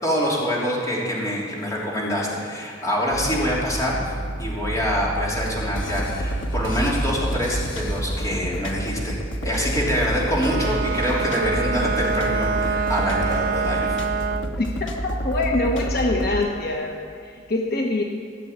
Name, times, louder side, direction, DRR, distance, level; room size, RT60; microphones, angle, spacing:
voice 1, 0.0-4.0 4.4-9.2 9.4-13.9, equal, 20° left, -5 dB, 3.2 m, -25 dB
sound 1, 3.1-8.3, right 1 dB, 75° right, 1.2 m, -31 dB
sound 2, 5.8-16.4, equal, 80° left, 1.3 m, -29 dB
Bowed string instrument, 10.3-14.6, right 5 dB, 50° right, 0.4 m, -26 dB
voice 2, 14.6-18.0, left 2 dB, 55° left, 1 dB, 1.1 m, -24 dB
15.5 x 7.1 x 8.8 m, 2.2 s
head